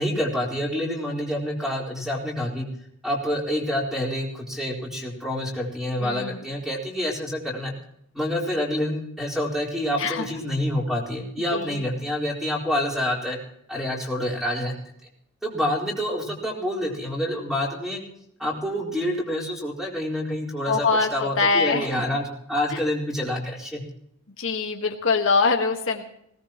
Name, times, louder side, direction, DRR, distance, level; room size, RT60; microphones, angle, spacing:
voice 1, 0.0-2.7 3.0-7.7 8.1-13.4 13.7-14.8 15.4-18.0 18.4-23.8, left 1 dB, ahead, -2 dB, 4.1 m, -27 dB
voice 2, 6.0-6.4 10.0-10.3 11.5-11.8 20.7-21.9 22.7-22.8 24.4-26.0, left 4 dB, 65° left, 3 dB, 1.6 m, -23 dB
20.5 x 18.0 x 3.0 m, 0.73 s
head